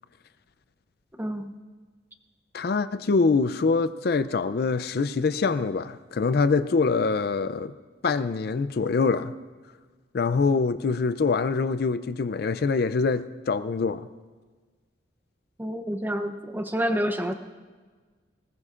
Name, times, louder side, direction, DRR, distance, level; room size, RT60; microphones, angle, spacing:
voice 1, 1.2-1.5 15.6-17.3, equal, 10° right, 8 dB, 0.6 m, -28 dB
voice 2, 2.5-7.7 8.0-9.3 10.1-14.1, left 4 dB, 55° left, 13 dB, 0.4 m, -24 dB
20.0 x 19.0 x 2.5 m, 1.4 s
head